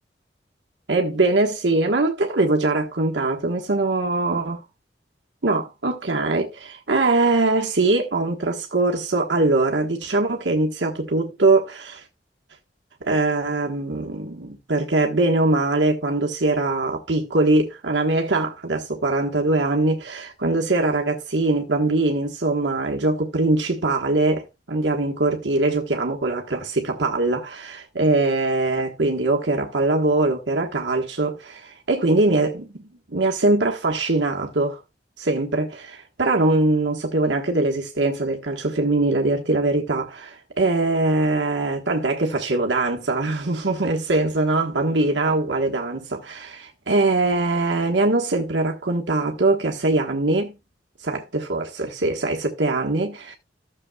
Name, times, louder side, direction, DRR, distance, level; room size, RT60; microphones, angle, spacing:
voice 1, 0.9-4.6 5.4-12.0 13.0-34.8 35.2-50.5 51.0-53.3, right 2 dB, 80° right, 1.3 m, -22 dB
15.0 x 6.8 x 2.3 m
head